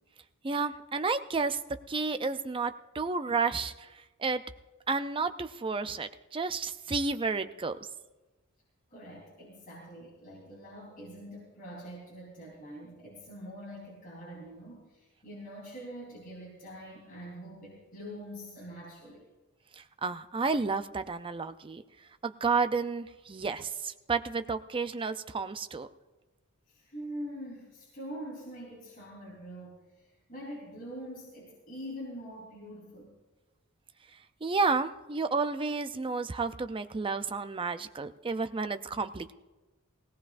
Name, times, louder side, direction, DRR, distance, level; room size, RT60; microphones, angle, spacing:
voice 1, 0.4-1.6 1.9-3.9 4.2-4.4 4.9-7.8 20.0-21.8 22.2-25.9 34.4-39.3, right 4 dB, 25° right, 9 dB, 0.5 m, -31 dB
voice 2, 8.9-19.3 26.7-33.1, equal, 40° left, -6 dB, 3.7 m, -44 dB
19.0 x 17.5 x 2.5 m, 1.1 s
head